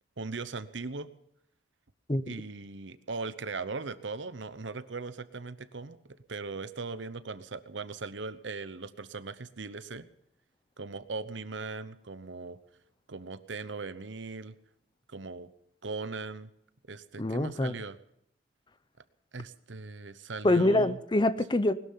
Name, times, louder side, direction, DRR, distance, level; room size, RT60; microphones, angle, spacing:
voice 1, 0.2-1.1 2.3-10.1 10.8-12.6 13.1-14.6 15.1-15.5 15.8-16.5 16.9-18.0 19.3-21.0, right 3 dB, 70° right, 13 dB, 0.9 m, -39 dB
voice 2, 17.2-17.7 20.4-21.7, left 1 dB, 25° left, 14 dB, 0.7 m, -25 dB
20.5 x 12.5 x 5.6 m, 0.75 s
head